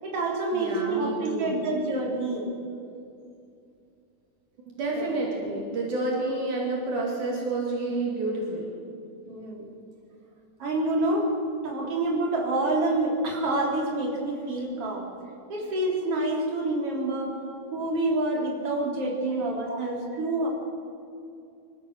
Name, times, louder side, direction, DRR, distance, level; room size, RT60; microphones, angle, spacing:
voice 1, 0.0-2.5 4.9-5.1 9.3-9.7 10.6-11.3 11.6-15.1 15.5-17.4 17.7-20.5, right 2 dB, 45° right, -1 dB, 4.3 m, -27 dB
voice 2, 0.5-1.7 4.7-8.8 17.4-17.6 19.3-19.4 19.7-19.8, right 2 dB, 65° right, -2 dB, 3.8 m, -30 dB
25.5 x 15.0 x 6.8 m, 2.5 s
omnidirectional pair, 3.8 m